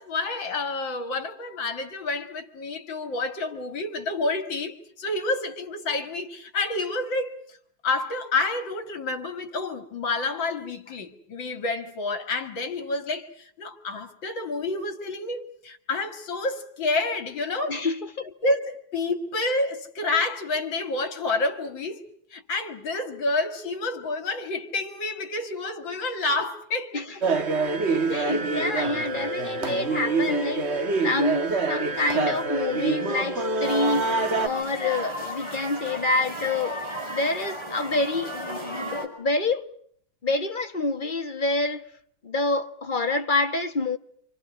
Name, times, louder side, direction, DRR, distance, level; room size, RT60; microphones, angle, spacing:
voice 1, 0.0-7.6 7.8-17.9 18.4-22.0 22.3-27.0, left 2 dB, 65° left, 2.8 m, -29 dB
voice 2, 17.7-18.3 26.9-27.2 27.9-30.7 31.0-34.1 34.4-36.8 37.1-39.7 40.2-41.8 42.2-44.0, left 3 dB, 25° left, 1.3 m, -27 dB
sound 1, 27.2-34.5, right 3 dB, 35° right, 1.5 m, -26 dB
sound 2, 33.6-39.1, equal, 10° right, 5.0 m, -34 dB
28.0 x 27.0 x 6.3 m
omnidirectional pair, 2.3 m